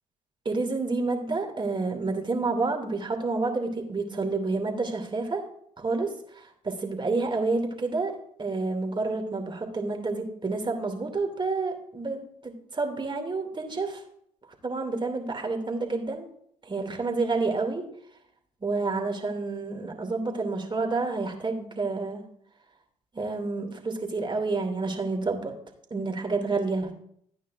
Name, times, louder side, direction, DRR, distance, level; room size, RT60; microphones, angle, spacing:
voice 1, 0.4-5.4 5.8-14.0 14.6-16.3 16.6-17.8 18.6-22.2 23.1-25.5 25.9-26.9, right 3 dB, 30° right, 3 dB, 2.5 m, -29 dB
14.5 x 9.1 x 2.6 m, 0.67 s
hypercardioid pair, 50°, 17 cm